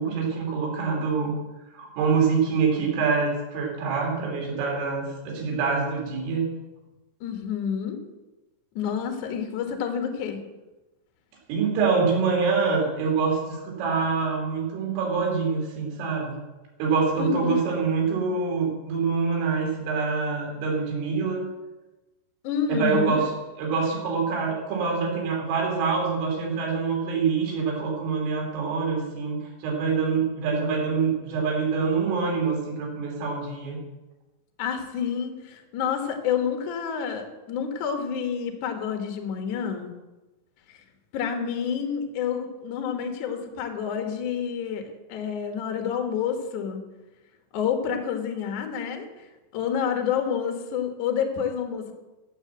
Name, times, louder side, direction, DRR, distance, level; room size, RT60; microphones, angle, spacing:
voice 1, 0.0-1.3 1.7-6.4 11.5-16.4 16.8-21.5 22.7-23.3 23.6-33.8, right 5 dB, 75° right, -1 dB, 5.5 m, -25 dB
voice 2, 7.2-8.0 8.8-10.4 17.2-17.6 22.4-23.2 34.6-39.9 40.7-40.8 41.1-46.8 47.5-49.3 49.5-51.9, left 7 dB, 70° left, 5 dB, 1.8 m, -29 dB
14.5 x 6.9 x 7.6 m, 1.1 s
omnidirectional pair, 5.9 m